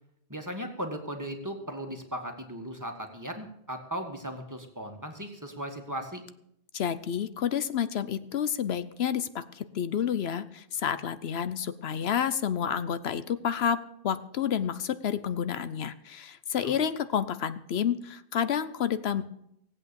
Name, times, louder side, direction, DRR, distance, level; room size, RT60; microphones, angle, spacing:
voice 1, 0.3-6.2 16.6-16.8, equal, 15° right, 3 dB, 1.7 m, -37 dB
voice 2, 6.7-19.2, left 8 dB, 80° left, 12 dB, 1.0 m, -30 dB
18.0 x 8.4 x 6.9 m, 0.75 s
omnidirectional pair, 1.1 m